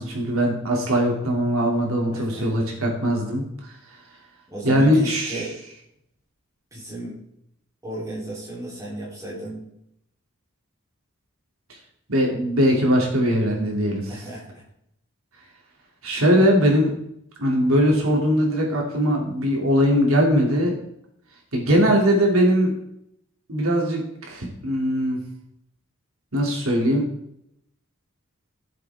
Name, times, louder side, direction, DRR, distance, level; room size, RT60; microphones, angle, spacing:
voice 1, 0.0-3.7 4.6-5.4 12.1-14.1 16.0-16.9 17.4-20.8 21.5-22.7 23.5-25.2 26.3-27.1, equal, 85° right, -1 dB, 2.9 m, -20 dB
voice 2, 2.1-2.5 4.5-5.5 6.7-7.2 7.8-9.6 14.1-14.6, right 1 dB, 15° right, -5 dB, 3.5 m, -34 dB
15.5 x 7.6 x 3.6 m, 0.76 s
head